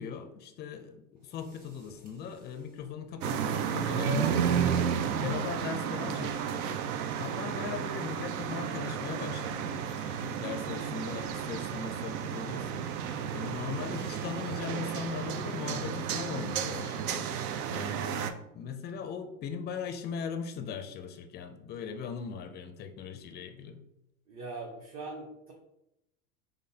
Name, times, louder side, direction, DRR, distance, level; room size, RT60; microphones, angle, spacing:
voice 1, 0.0-6.8 7.2-12.9 13.3-17.3 17.7-23.8, left 6 dB, 25° left, 8 dB, 0.4 m, -39 dB
sound 1, 1.2-14.7, equal, 20° right, 1.3 m, -50 dB
sound 2, 3.2-18.3, right 8 dB, 80° right, 0.5 m, -32 dB
voice 2, 24.3-25.5, right 3 dB, 40° right, -1 dB, 0.8 m, -41 dB
3.8 x 3.4 x 2.7 m, 0.85 s
hypercardioid pair, 90°, 43 cm